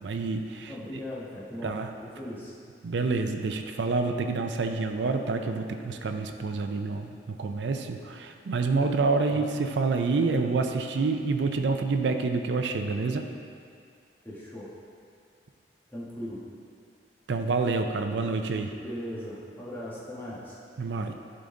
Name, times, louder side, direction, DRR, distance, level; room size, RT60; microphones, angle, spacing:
voice 1, 0.0-0.7 1.6-1.9 2.8-13.3 17.3-18.7 20.8-21.2, right 4 dB, 80° right, 5 dB, 0.5 m, -28 dB
voice 2, 0.7-1.8 2.1-2.5 9.3-9.5 14.2-14.7 15.9-16.4 18.8-20.6, left 1 dB, 10° left, -8 dB, 1.5 m, -38 dB
10.5 x 3.9 x 3.8 m, 2.3 s
head